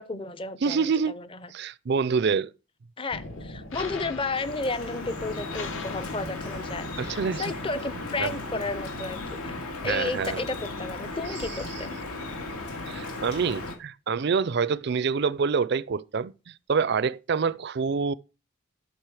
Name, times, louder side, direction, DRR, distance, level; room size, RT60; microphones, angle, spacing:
voice 1, 0.0-1.5 3.0-11.9, left 3 dB, 25° left, 0.6 m, -33 dB
voice 2, 0.6-1.1 1.5-2.5 7.0-7.5 8.2-8.3 9.8-10.4 12.9-18.1, right 5 dB, 50° right, 0.4 m, -26 dB
sound 1, 3.1-9.7, left 2 dB, 60° left, 1.2 m, -41 dB
Drip, 4.3-13.7, left 2 dB, 85° left, 2.3 m, -36 dB
12.0 x 6.3 x 4.8 m
head